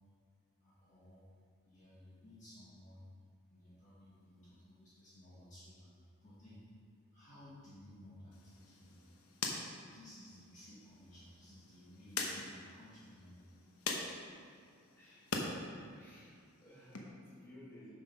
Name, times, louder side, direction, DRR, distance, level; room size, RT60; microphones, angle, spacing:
voice 1, 0.6-1.3 1.6-3.0 3.5-6.6 7.1-8.9 9.9-13.4 15.5-15.9 17.2-17.3, left 1 dB, 35° left, -10 dB, 1.9 m, -57 dB
sound 1, 8.3-15.5 15.9-17.0, left 3 dB, 90° left, 1.1 m, -44 dB
voice 2, 14.7-15.3 16.0-17.9, left 1 dB, 10° left, -10 dB, 2.5 m, -57 dB
7.3 x 6.7 x 5.5 m, 2.1 s
head